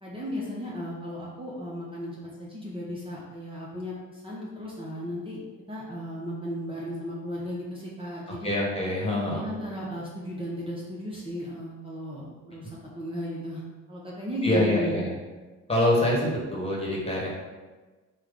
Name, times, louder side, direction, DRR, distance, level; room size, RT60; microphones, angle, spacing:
voice 1, 0.0-5.4 5.7-8.5 9.2-13.6 13.9-15.0, equal, 20° right, -5 dB, 0.9 m, -35 dB
voice 2, 8.4-9.4 14.4-15.1 15.7-17.3, left 1 dB, 20° left, -3 dB, 1.3 m, -25 dB
4.9 x 2.3 x 3.8 m, 1.3 s
cardioid pair, 90°, 30 cm